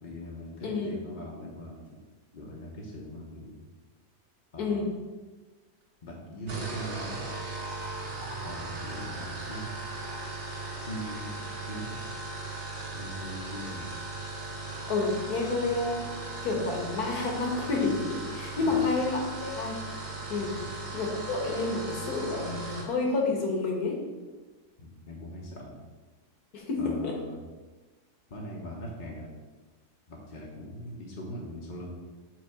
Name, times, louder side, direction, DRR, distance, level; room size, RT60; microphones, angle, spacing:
voice 1, 0.0-1.9 2.3-3.7 4.5-4.9 6.0-7.3 8.4-9.7 10.8-12.0 12.9-13.9 18.5-18.8 20.4-20.7 24.8-25.8 26.8-27.4 28.3-29.3 30.1-31.9, equal, 35° left, -3 dB, 0.9 m, -41 dB
voice 2, 0.6-1.0 4.6-4.9 14.9-16.0 16.4-19.8 20.3-20.5 20.9-24.0 26.5-27.1, left 3 dB, 65° left, 0 dB, 1.7 m, -29 dB
sound 1, 6.4-22.9, right 2 dB, 70° right, 2.1 m, -38 dB
7.5 x 3.3 x 4.9 m, 1.3 s
omnidirectional pair, 1.7 m